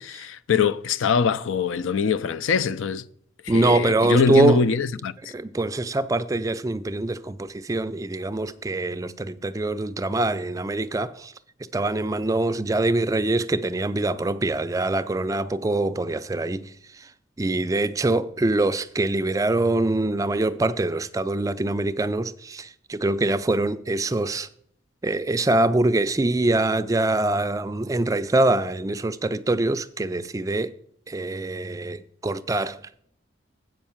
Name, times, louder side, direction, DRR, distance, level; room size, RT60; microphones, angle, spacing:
voice 1, 0.0-3.0 3.4-5.3, left 5 dB, 85° left, 0.4 m, -23 dB
voice 2, 3.5-4.6 5.3-11.3 11.7-16.7 17.4-24.5 25.0-30.7 31.1-33.0, right 2 dB, 15° right, 0.3 m, -24 dB
7.9 x 5.4 x 7.2 m
head